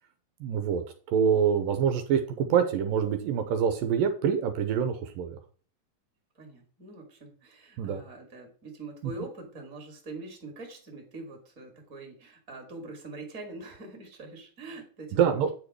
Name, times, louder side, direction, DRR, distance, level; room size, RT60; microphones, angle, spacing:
voice 1, 0.4-5.4 7.8-8.0 9.0-9.1 15.1-15.5, right 7 dB, 75° right, 7 dB, 2.5 m, -26 dB
voice 2, 6.4-15.5, right 2 dB, 25° right, 3 dB, 2.4 m, -43 dB
9.4 x 5.2 x 4.7 m, 0.41 s
omnidirectional pair, 4.1 m